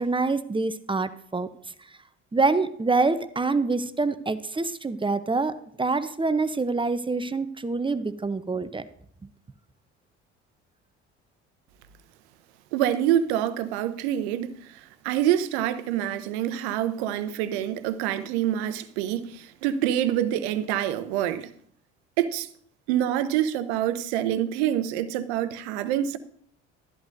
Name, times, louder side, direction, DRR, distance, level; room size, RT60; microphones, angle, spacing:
voice 1, 0.0-1.5 2.3-8.8, right 3 dB, 15° right, 0.7 m, -26 dB
voice 2, 12.7-21.5 22.2-22.5 22.9-26.2, right 11 dB, 70° right, 0.8 m, -26 dB
13.0 x 11.0 x 2.6 m
hypercardioid pair, 60°, 34 cm